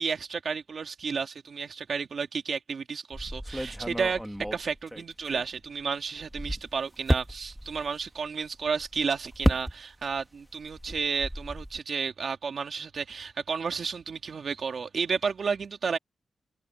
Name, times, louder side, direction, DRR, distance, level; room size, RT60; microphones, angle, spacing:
voice 1, 0.0-4.2 4.5-16.0, right 5 dB, 60° right, 2.4 m, -32 dB
sound 1, 3.1-5.8 6.2-10.2 10.5-11.8, equal, ahead, 1.7 m, -32 dB
wide cardioid pair, 100°, 0 cm